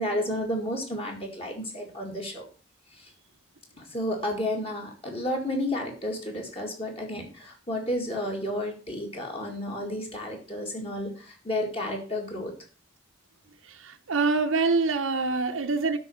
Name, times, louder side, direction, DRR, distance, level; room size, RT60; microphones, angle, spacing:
voice 1, 0.0-2.5 2.9-3.1 3.8-12.5, left 1 dB, 30° left, 2.2 m, -32 dB
voice 2, 13.6-16.0, right 4 dB, 85° right, 0.9 m, -25 dB
12.0 x 4.1 x 6.9 m
head